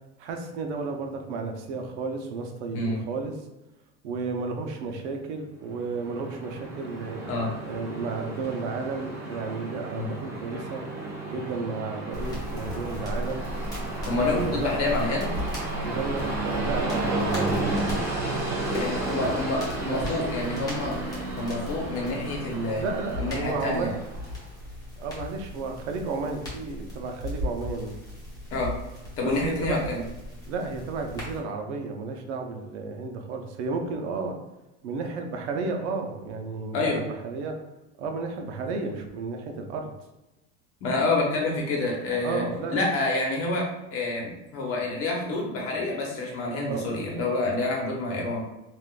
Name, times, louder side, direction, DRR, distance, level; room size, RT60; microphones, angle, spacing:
voice 1, 0.2-3.3 4.0-7.2 7.6-10.8 11.2-13.4 14.3-14.8 15.8-18.0 19.1-19.3 19.8-20.0 22.8-23.9 25.0-27.9 29.2-30.0 30.5-34.4 34.8-37.6 38.0-39.9 42.2-42.8 46.5-46.9, right 4 dB, 80° right, 3 dB, 0.7 m, -32 dB
Train, 5.7-24.4, right 2 dB, 10° right, 0.8 m, -33 dB
sound 1, 12.1-31.4, left 1 dB, 10° left, 1.2 m, -37 dB
voice 2, 14.1-15.4 18.7-20.9 21.4-22.8 23.2-23.9 28.5-28.7 29.2-30.0 36.7-37.0 40.8-42.4 42.7-43.6 43.9-48.4, left 2 dB, 40° left, -1 dB, 1.0 m, -28 dB
3.6 x 2.5 x 2.4 m, 0.98 s
supercardioid pair, 135°, 34 cm